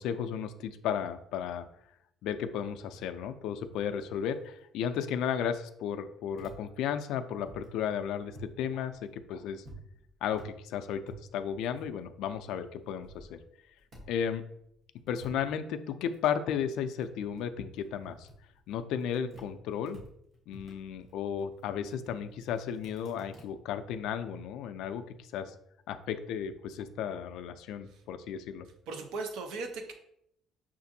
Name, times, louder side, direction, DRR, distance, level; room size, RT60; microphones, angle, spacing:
voice 1, 0.0-1.7 2.2-9.6 10.2-13.4 14.1-14.5 15.1-18.3 18.7-20.0 20.5-25.5 25.9-28.7, left 8 dB, 70° left, 8 dB, 0.3 m, -34 dB
sound 1, 6.4-8.6 8.9-12.4 12.8-14.3 14.6-19.5 19.9-23.4, right 1 dB, 35° right, 1.0 m, -52 dB
voice 2, 28.9-29.9, right 3 dB, 75° right, 5 dB, 0.6 m, -38 dB
5.9 x 2.5 x 2.7 m, 0.75 s
cardioid pair, 170°, 0 cm